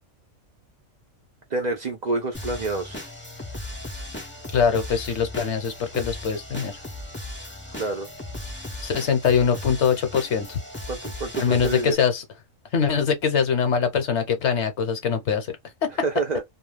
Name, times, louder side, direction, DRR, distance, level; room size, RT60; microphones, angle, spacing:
voice 1, 1.5-3.0 7.8-8.1 10.9-12.0 16.0-16.4, right 3 dB, 60° right, 0.4 m, -27 dB
sound 1, 2.3-11.9, left 1 dB, 20° left, 0.3 m, -37 dB
voice 2, 4.5-6.7 8.8-10.6 11.4-12.2 12.7-15.5 15.8-15.9, left 6 dB, 65° left, 1.0 m, -23 dB
2.4 x 2.3 x 3.2 m
omnidirectional pair, 1.4 m